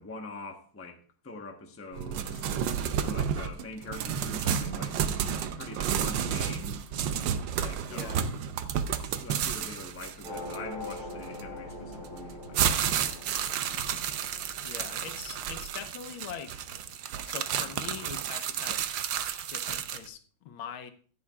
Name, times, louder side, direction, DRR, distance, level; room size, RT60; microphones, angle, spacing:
voice 1, 0.0-2.5 3.0-5.0 5.6-6.9 7.6-8.4 9.0-14.1, left 2 dB, 10° left, 0.7 m, -44 dB
sound 1, 1.9-11.4 12.0-20.1, right 8 dB, 70° right, 1.3 m, -31 dB
sound 2, 3.3-16.4, left 1 dB, 40° right, 5.1 m, -54 dB
voice 2, 7.9-8.3 14.6-16.6 17.3-18.9 19.5-20.9, left 7 dB, 85° left, 1.7 m, -42 dB
sound 3, 10.2-17.1, left 1 dB, 20° right, 4.4 m, -43 dB
15.0 x 9.7 x 2.4 m
omnidirectional pair, 2.2 m